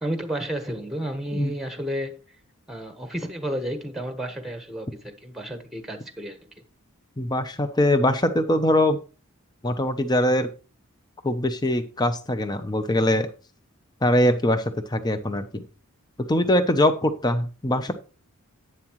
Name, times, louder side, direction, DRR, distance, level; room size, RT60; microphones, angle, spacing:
voice 1, 0.0-2.2 2.7-6.4, equal, ahead, 1.2 m, -31 dB
voice 2, 7.2-9.0 9.6-10.5 11.2-13.3 14.0-15.6 16.3-17.9, left 1 dB, 20° left, 0.7 m, -22 dB
11.0 x 8.9 x 3.1 m
head